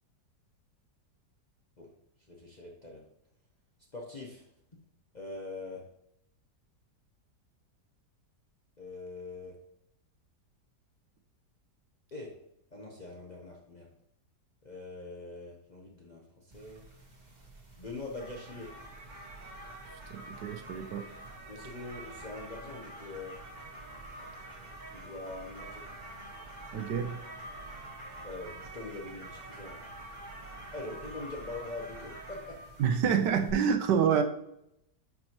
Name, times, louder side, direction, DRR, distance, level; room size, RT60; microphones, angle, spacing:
voice 1, 2.3-3.0 3.9-4.5 5.1-5.9 8.8-9.6 12.1-12.3 12.7-13.9 14.6-16.9 17.8-18.7 21.5-23.4 24.9-25.8 28.2-29.8 30.7-32.6, left 2 dB, 35° left, -2 dB, 0.7 m, -43 dB
sound 1, 16.5-33.5, right 1 dB, 30° right, 1.2 m, -46 dB
voice 2, 20.1-21.1 26.7-27.2 32.8-34.2, right 7 dB, 75° right, 7 dB, 1.3 m, -27 dB
9.6 x 4.7 x 3.0 m, 0.78 s
omnidirectional pair, 1.8 m